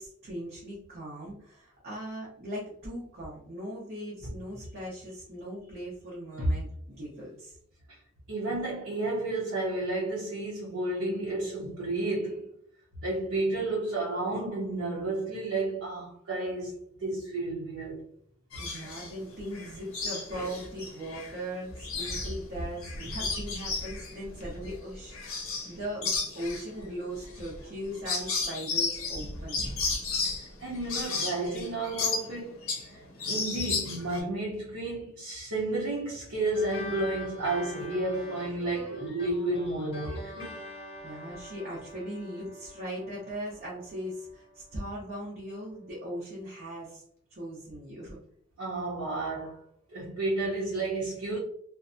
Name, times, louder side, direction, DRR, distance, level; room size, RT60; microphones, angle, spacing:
voice 1, 0.0-7.6 18.6-29.6 41.0-47.0 47.3-48.2, equal, 45° right, 0.7 m, -39 dB
voice 2, 8.3-12.5 13.0-18.0 20.3-20.5 30.3-40.6 48.6-49.6 49.9-51.4, right 2 dB, 80° right, 0.8 m, -32 dB
sound 1, 18.5-19.1 19.5-21.3 21.7-25.7 26.0-32.9 33.2-34.2, left 4 dB, 65° left, 0.6 m, -33 dB
sound 2, 36.5-45.4, left 1 dB, 25° left, 0.7 m, -45 dB
2.6 x 2.1 x 2.5 m
head